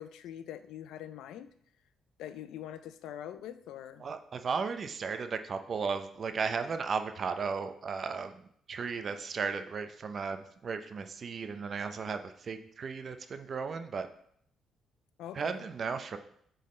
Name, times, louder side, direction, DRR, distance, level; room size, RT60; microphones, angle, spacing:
voice 1, 0.0-1.5 2.2-4.1 15.2-15.7, left 10 dB, 85° left, 12 dB, 0.4 m, -43 dB
voice 2, 4.0-8.4 8.7-14.1 15.3-16.2, right 5 dB, 50° right, 8 dB, 0.5 m, -35 dB
7.9 x 3.9 x 3.2 m, 0.67 s
cardioid pair, 90°, 0 cm